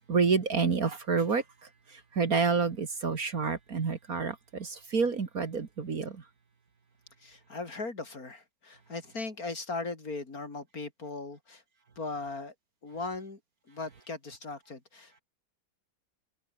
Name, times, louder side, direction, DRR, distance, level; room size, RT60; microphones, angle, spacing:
voice 1, 0.1-1.4 1.9-6.2, right 5 dB, 50° right, 2.3 m, -28 dB
voice 2, 7.2-11.6 12.0-12.5 12.8-13.4 13.7-15.2, left 3 dB, 50° left, 3.9 m, -38 dB
omnidirectional pair, 2.1 m